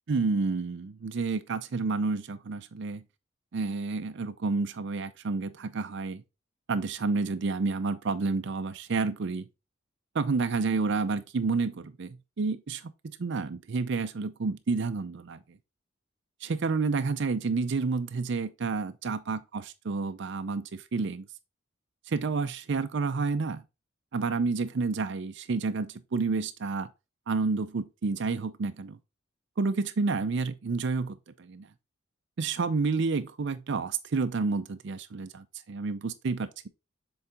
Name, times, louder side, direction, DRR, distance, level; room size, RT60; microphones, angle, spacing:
voice 1, 0.1-3.0 3.5-6.2 6.7-9.5 10.1-12.8 13.2-15.4 16.4-21.2 22.1-23.6 24.1-26.9 27.3-29.0 29.6-31.7 32.4-36.7, right 4 dB, 60° right, 0.5 m, -30 dB
7.0 x 3.9 x 3.5 m
head